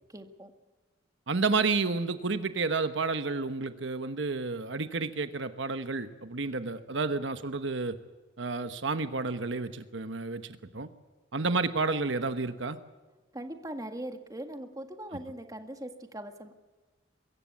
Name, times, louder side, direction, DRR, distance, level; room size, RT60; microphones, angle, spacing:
voice 1, 0.1-0.5 13.3-16.5, right 1 dB, 20° right, 6 dB, 1.8 m, -40 dB
voice 2, 1.3-8.0 8.4-10.9 11.3-12.8, right 4 dB, 75° right, 10 dB, 1.1 m, -30 dB
24.0 x 15.0 x 8.3 m, 1.3 s
head